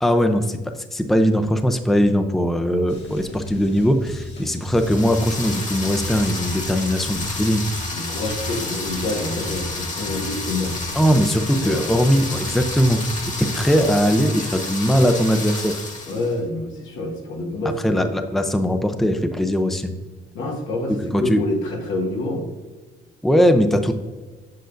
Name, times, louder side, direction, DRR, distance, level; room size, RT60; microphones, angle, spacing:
voice 1, 0.0-0.6 0.9-7.6 10.9-13.0 13.4-15.8 17.8-19.9 21.1-21.4 23.2-23.9, equal, ahead, 7 dB, 0.5 m, -20 dB
sound 1, 2.9-13.9, left 1 dB, 65° left, 1.8 m, -35 dB
sound 2, 4.6-16.3, left 3 dB, 40° left, 1.5 m, -31 dB
voice 2, 7.9-10.8 11.2-11.9 16.1-18.1 20.3-22.5, left 2 dB, 85° left, 0 dB, 1.5 m, -27 dB
8.0 x 6.3 x 2.5 m, 1.3 s
cardioid pair, 90°, 20 cm